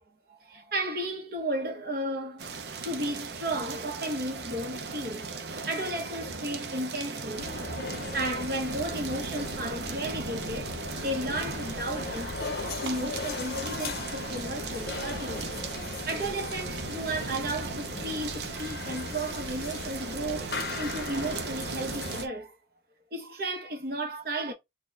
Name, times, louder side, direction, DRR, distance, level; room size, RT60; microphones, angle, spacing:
voice 1, 0.3-7.5 8.1-10.7 11.0-15.5 16.0-22.6 23.1-24.5, right 1 dB, 55° right, 1.0 m, -34 dB
sound 1, 2.4-22.3, right 4 dB, 75° right, 0.6 m, -37 dB
sound 2, 7.3-22.2, left 3 dB, 60° left, 0.7 m, -38 dB
3.9 x 2.3 x 3.2 m
head